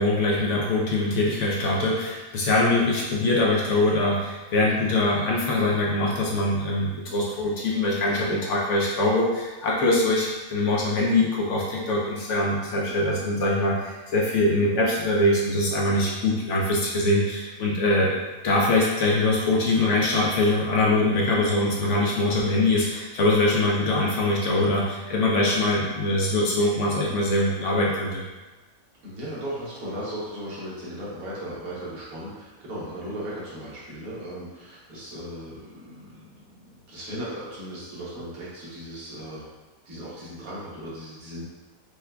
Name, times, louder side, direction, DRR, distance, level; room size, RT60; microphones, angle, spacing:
voice 1, 0.0-18.2 18.4-28.2, left 2 dB, 65° left, -3 dB, 0.8 m, -23 dB
voice 2, 29.0-39.5 39.8-41.4, equal, 75° right, -7 dB, 1.5 m, -37 dB
4.4 x 2.3 x 2.2 m, 1.2 s
omnidirectional pair, 1.5 m